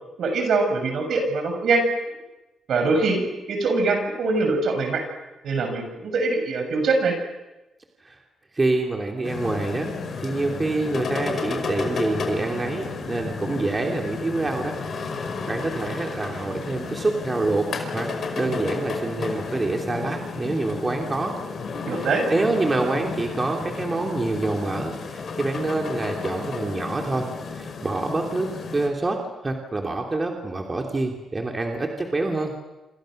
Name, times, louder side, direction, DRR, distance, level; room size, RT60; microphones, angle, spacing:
voice 1, 0.2-1.8 2.7-3.2 3.5-5.0 5.4-7.1 21.9-22.3, right 3 dB, 70° right, 4 dB, 7.3 m, -23 dB
voice 2, 8.5-9.9 10.2-14.8 15.2-18.1 18.4-21.4 22.0-32.5, right 2 dB, 25° right, 2 dB, 3.0 m, -26 dB
sound 1, 9.2-28.9, left 4 dB, 55° left, 5.2 m, -32 dB
28.5 x 27.5 x 6.6 m, 1.0 s
cardioid pair, 110°, 0 cm